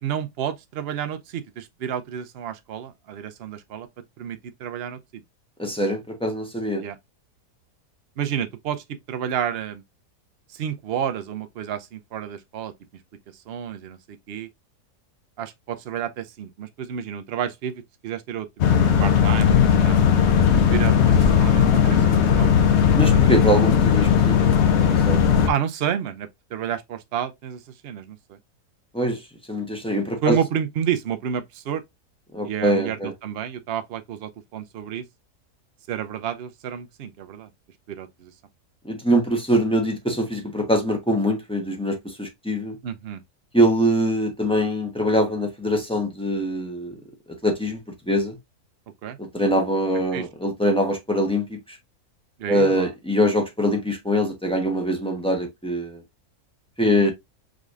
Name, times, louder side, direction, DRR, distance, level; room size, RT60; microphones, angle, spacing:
voice 1, 0.0-3.9 4.2-5.0 6.8-7.0 8.2-9.8 10.5-12.7 13.5-14.0 14.3-14.5 15.4-18.5 18.8-20.2 20.5-22.5 23.0-23.2 25.5-28.4 30.2-31.8 32.4-35.0 35.9-37.5 37.9-38.3 42.8-43.2 49.0-49.2 50.1-50.2 52.4-52.9 56.9-57.1, right 9 dB, 60° right, 0.6 m, -30 dB
voice 2, 5.6-6.8 22.9-24.5 24.9-25.2 28.9-29.2 29.5-30.4 32.3-33.1 38.8-42.8 43.5-47.0 47.4-47.8 48.1-48.4 49.3-51.8 52.5-56.0 56.8-57.1, equal, 5° left, 0.8 m, -23 dB
sound 1, 18.6-25.5, left 7 dB, 55° left, 0.8 m, -17 dB
5.0 x 3.1 x 2.4 m
omnidirectional pair, 1.7 m